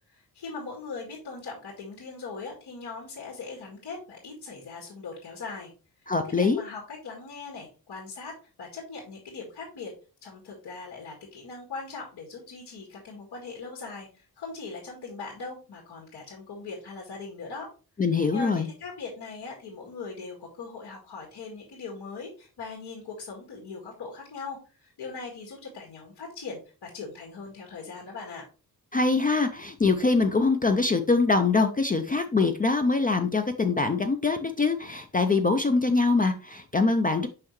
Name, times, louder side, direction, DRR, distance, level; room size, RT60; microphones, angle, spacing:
voice 1, 0.1-5.7 6.4-9.9 10.2-17.7 18.3-28.4, left 4 dB, 85° left, -2 dB, 1.9 m, -40 dB
voice 2, 6.1-6.6 18.0-18.7 28.9-37.3, left 3 dB, 25° left, 6 dB, 0.4 m, -23 dB
5.7 x 5.3 x 3.1 m, 0.35 s
wide cardioid pair, 150°, 39 cm